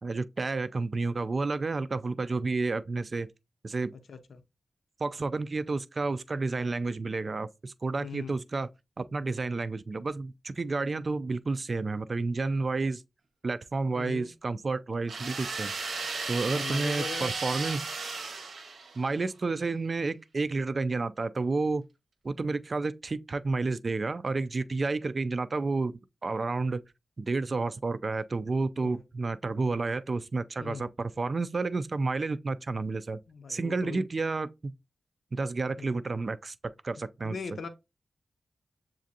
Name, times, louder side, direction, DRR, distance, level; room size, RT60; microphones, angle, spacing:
voice 1, 0.0-3.3 3.6-3.9 5.0-8.7 9.0-13.0 13.4-15.7 16.3-17.9 19.0-21.8 22.2-26.8 27.2-33.2 33.5-34.7 35.3-36.5 36.8-37.4, right 3 dB, 40° right, 0.3 m, -30 dB
voice 2, 4.1-4.4 8.0-8.4 13.9-14.3 16.4-17.3 28.8-29.0 30.6-30.9 33.3-34.0 35.8-35.9 37.2-37.7, left 5 dB, 75° left, 0.5 m, -40 dB
sound 1, 15.1-19.2, right 4 dB, 85° right, 0.9 m, -35 dB
7.2 x 2.5 x 2.7 m
wide cardioid pair, 110°, 0 cm